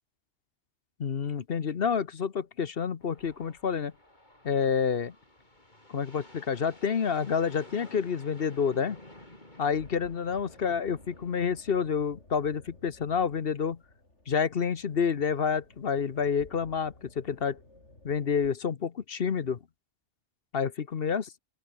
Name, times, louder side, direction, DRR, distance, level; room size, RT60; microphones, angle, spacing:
voice 1, 1.0-3.9 4.4-5.1 5.9-9.0 9.6-13.8 14.3-17.6 18.0-19.6 20.5-21.3, left 6 dB, 55° left, 1.2 m, -29 dB
sound 1, 3.0-11.6, left 1 dB, 40° left, 5.9 m, -53 dB
sound 2, 9.7-18.5, left 2 dB, 75° left, 6.0 m, -55 dB
open air
omnidirectional pair, 1.2 m